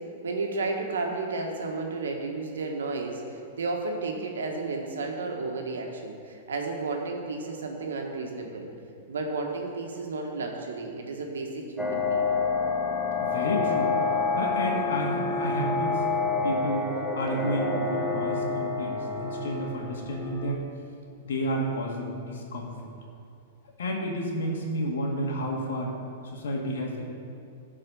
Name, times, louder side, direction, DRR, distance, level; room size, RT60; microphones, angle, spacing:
voice 1, 0.2-8.7 9.1-12.3, right 3 dB, 90° right, 1 dB, 1.5 m, -32 dB
sound 1, 11.8-20.5, left 4 dB, ahead, 1.1 m, -28 dB
voice 2, 13.2-13.9 14.3-16.8 17.1-20.6 21.3-22.9 23.8-25.9 26.3-27.0, equal, 80° left, -1 dB, 2.0 m, -31 dB
14.0 x 4.8 x 5.5 m, 2.5 s
hypercardioid pair, 130°, 0 cm